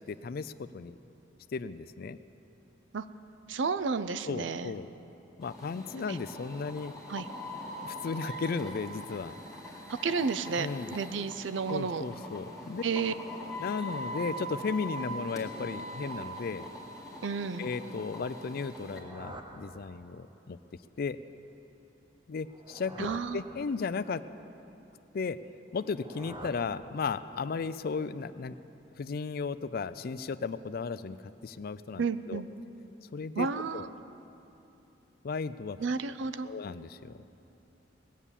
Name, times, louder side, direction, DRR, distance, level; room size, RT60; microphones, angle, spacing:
voice 1, 0.1-1.0 1.5-2.2 4.3-4.9 5.4-6.9 7.8-9.3 10.6-11.0 11.7-12.8 13.6-16.6 17.6-20.6 21.0-21.2 22.3-24.2 25.1-25.4 25.7-28.6 29.0-31.2 31.4-32.4 33.1-33.5 33.7-33.8 35.2-35.8 36.4-37.2, left 4 dB, 55° left, 12 dB, 0.4 m, -35 dB
voice 2, 3.5-4.7 6.1-6.2 7.1-7.3 10.0-10.7 10.9-12.0 12.8-13.1 17.2-17.7 23.0-23.4 32.0-32.5 33.4-33.9 35.8-36.5, right 5 dB, 85° right, 12 dB, 0.5 m, -31 dB
sound 1, 5.4-19.0, equal, 5° right, 2.0 m, -42 dB
sound 2, 18.6-20.4 22.3-24.2 25.7-27.5, right 1 dB, 25° right, 0.8 m, -48 dB
19.5 x 8.3 x 7.3 m, 2.9 s
head